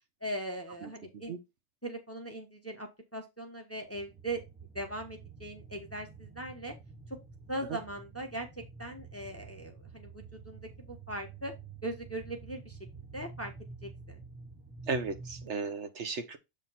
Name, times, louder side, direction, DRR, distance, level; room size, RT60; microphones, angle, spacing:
voice 1, 0.2-1.4 1.8-4.4 4.7-6.7 7.5-11.5 11.8-12.8 13.1-13.5 13.8-14.2, right 1 dB, 10° left, 1.0 m, -40 dB
voice 2, 0.8-1.4 7.7-7.8 14.9-16.4, right 4 dB, 60° right, 1.1 m, -36 dB
sound 1, 3.8-15.5, right 4 dB, 10° right, 0.5 m, -49 dB
7.3 x 3.6 x 4.1 m
omnidirectional pair, 1.4 m